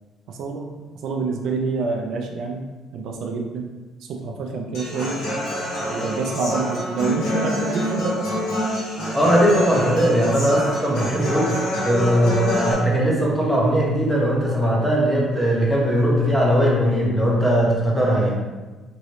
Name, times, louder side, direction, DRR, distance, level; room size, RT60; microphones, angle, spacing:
voice 1, 0.3-0.7 1.0-3.7 4.0-5.2 5.9-8.5, right 4 dB, 70° right, 2 dB, 0.4 m, -27 dB
Human voice / Acoustic guitar, 4.7-12.7, left 1 dB, 85° left, 1.2 m, -26 dB
voice 2, 9.1-18.4, equal, ahead, -4 dB, 0.8 m, -19 dB
3.0 x 2.7 x 3.0 m, 1.2 s
cardioid pair, 130°, 0 cm